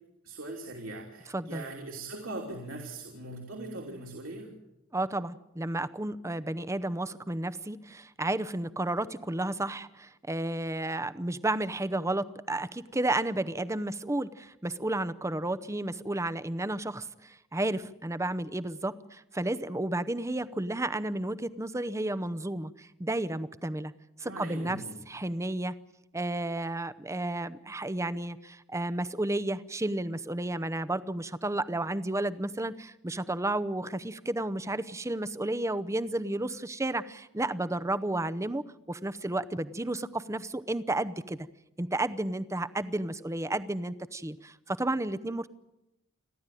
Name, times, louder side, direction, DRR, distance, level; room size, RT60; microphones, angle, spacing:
voice 1, 0.2-4.5 24.2-25.0, right 2 dB, 70° right, 0 dB, 3.2 m, -40 dB
voice 2, 1.3-1.6 4.9-23.9 24.2-24.8 25.1-25.7 26.1-41.5 41.8-45.5, right 1 dB, 15° right, 14 dB, 0.7 m, -32 dB
29.5 x 11.5 x 9.1 m, 0.90 s
head